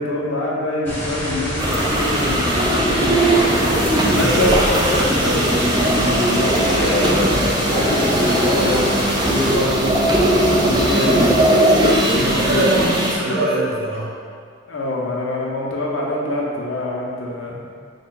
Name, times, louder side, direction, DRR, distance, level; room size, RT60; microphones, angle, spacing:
voice 1, 0.0-3.4 4.0-8.9 9.3-9.8 10.5-11.4 12.0-12.6 14.7-17.6, left 1 dB, 80° left, -3 dB, 0.6 m, -24 dB
sound 1, 0.8-9.6, equal, 10° left, 0.7 m, -27 dB
sound 2, 1.6-13.1, right 1 dB, 20° right, 0.3 m, -18 dB
voice 2, 4.1-4.5 9.7-9.9 12.3-14.1, right 2 dB, 55° right, -7 dB, 0.9 m, -23 dB
3.5 x 2.2 x 3.8 m, 2.1 s
head